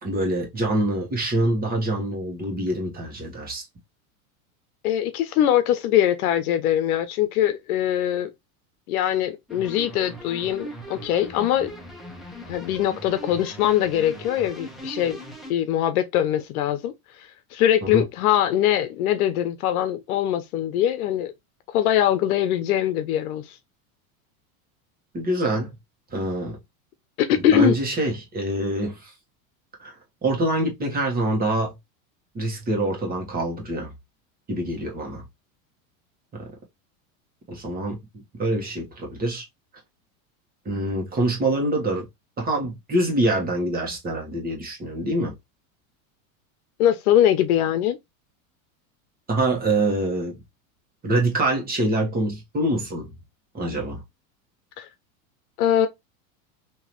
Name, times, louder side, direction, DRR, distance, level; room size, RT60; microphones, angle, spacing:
voice 1, 0.0-3.6 17.8-18.0 25.1-25.7 26.1-26.6 27.5-29.1 29.8-29.9 30.2-31.7 32.3-33.9 34.5-35.2 36.3-36.5 37.5-39.4 40.6-42.1 42.4-45.3 49.3-50.4 51.0-53.1 53.5-54.0, right 1 dB, 20° right, 1.4 m, -25 dB
voice 2, 4.8-8.3 8.9-11.7 12.5-21.3 21.7-23.6 27.2-27.8 46.8-48.0 54.8-54.9 55.6-55.9, left 11 dB, 90° left, 0.7 m, -22 dB
sound 1, 9.5-15.5, right 1 dB, ahead, 0.8 m, -39 dB
3.8 x 2.8 x 3.0 m
supercardioid pair, 135°, 42 cm